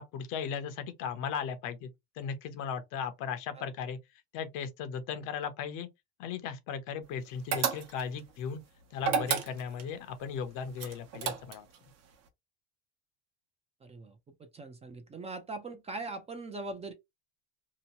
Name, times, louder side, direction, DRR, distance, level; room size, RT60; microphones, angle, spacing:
voice 1, 0.0-4.0 4.3-5.9 6.2-8.6 8.9-11.7, left 7 dB, 60° left, 0.8 m, -37 dB
sound 1, 7.5-8.2 9.0-9.9 10.8-11.8, right 7 dB, 50° right, 0.8 m, -31 dB
voice 2, 13.8-16.9, right 3 dB, 20° right, 0.5 m, -41 dB
2.9 x 2.1 x 2.8 m
supercardioid pair, 120°, 35 cm